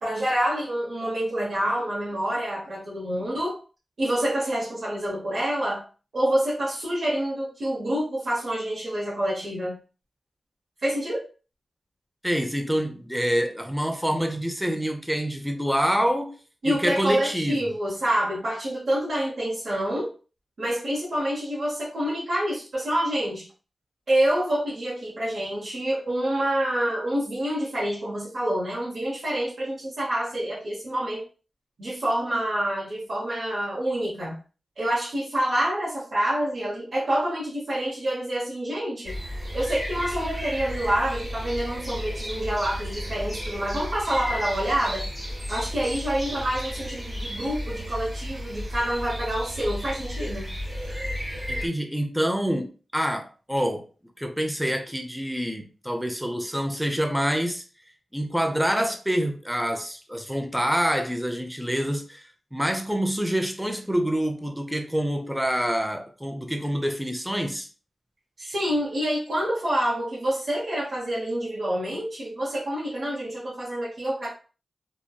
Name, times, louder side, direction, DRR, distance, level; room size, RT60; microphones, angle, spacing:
voice 1, 0.0-3.6 4.0-5.9 6.1-9.8 10.8-11.3 16.6-20.1 20.6-23.5 24.1-31.2 31.8-34.4 34.8-39.2 39.5-45.1 45.5-50.5 68.4-74.3, right 1 dB, 70° right, 0.9 m, -27 dB
voice 2, 12.2-16.3 16.6-17.6 51.5-53.9 54.2-57.6 58.1-67.7, equal, 5° right, 0.6 m, -26 dB
sound 1, 39.0-51.7, equal, 20° right, 1.2 m, -33 dB
2.9 x 2.2 x 2.2 m
cardioid pair, 45°, 0 cm